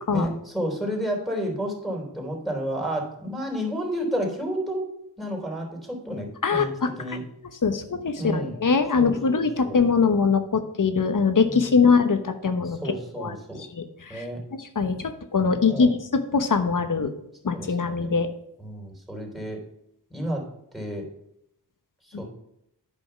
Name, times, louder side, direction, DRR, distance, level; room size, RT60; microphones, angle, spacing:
voice 1, 0.1-4.8 5.2-6.7 7.0-7.2 8.2-8.6 9.0-9.8 11.5-11.8 12.6-13.6 14.1-14.4 15.7-15.9 17.4-18.2 18.6-19.6 20.1-20.4 20.7-21.1 22.0-22.2, equal, ahead, 0 dB, 3.3 m, -31 dB
voice 2, 6.4-6.9 7.6-12.8 13.2-13.3 13.8-13.9 14.1-14.2 14.8-17.1 17.4-18.3, left 5 dB, 55° left, 9 dB, 1.1 m, -22 dB
9.2 x 5.3 x 5.7 m, 0.79 s
cardioid pair, 55°, 39 cm